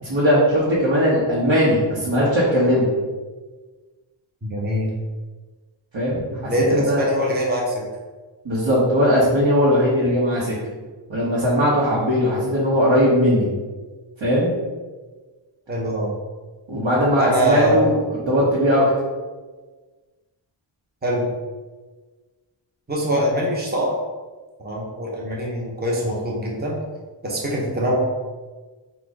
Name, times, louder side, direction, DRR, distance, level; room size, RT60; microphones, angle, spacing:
voice 1, 0.0-2.9 5.9-6.5 6.9-7.0 8.4-10.6 11.1-13.5 14.2-14.5 16.7-17.9 18.3-18.8, equal, 70° right, -7 dB, 1.3 m, -19 dB
voice 2, 4.4-4.9 6.5-7.9 15.7-16.2 17.2-17.8 21.0-21.2 22.9-23.9 24.6-26.8 27.2-28.0, equal, 20° right, -3 dB, 0.9 m, -23 dB
4.1 x 2.6 x 4.8 m, 1.3 s
wide cardioid pair, 85°, 45 cm